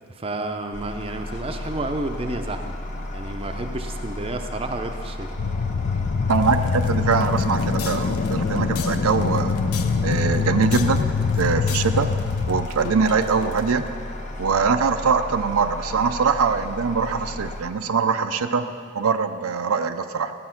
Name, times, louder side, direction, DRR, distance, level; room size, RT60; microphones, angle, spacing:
voice 1, 0.1-2.8 3.1-5.3, right 2 dB, 25° right, 5 dB, 0.6 m, -30 dB
sound 1, 0.7-17.6, left 1 dB, 35° left, 1.1 m, -34 dB
sound 2, 5.4-12.7, left 5 dB, 50° left, 0.4 m, -24 dB
sound 3, 6.3-14.0, left 7 dB, 80° left, 0.8 m, -39 dB
voice 2, 6.3-9.6 10.0-11.0 11.4-12.1 12.5-13.8 14.4-18.7 18.9-20.3, right 5 dB, 75° right, 8 dB, 0.5 m, -22 dB
14.5 x 8.5 x 5.8 m, 2.3 s
head